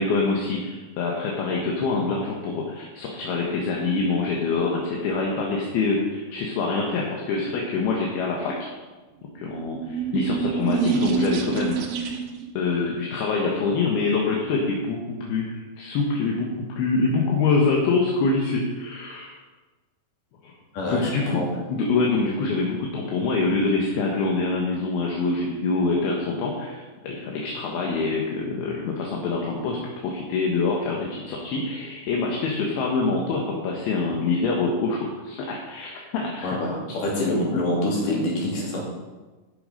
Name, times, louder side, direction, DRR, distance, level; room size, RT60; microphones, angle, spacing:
voice 1, 0.0-8.7 9.3-12.0 12.6-15.5 15.8-19.4 20.4-20.5 20.9-21.4 21.7-36.6, left 3 dB, 75° left, -1 dB, 3.2 m, -25 dB
sound 1, 9.4-12.5, right 6 dB, 70° right, 2.9 m, -26 dB
voice 2, 20.7-21.5 36.4-38.8, left 1 dB, 55° left, -4 dB, 4.4 m, -26 dB
15.0 x 6.9 x 5.2 m, 1.2 s
omnidirectional pair, 4.6 m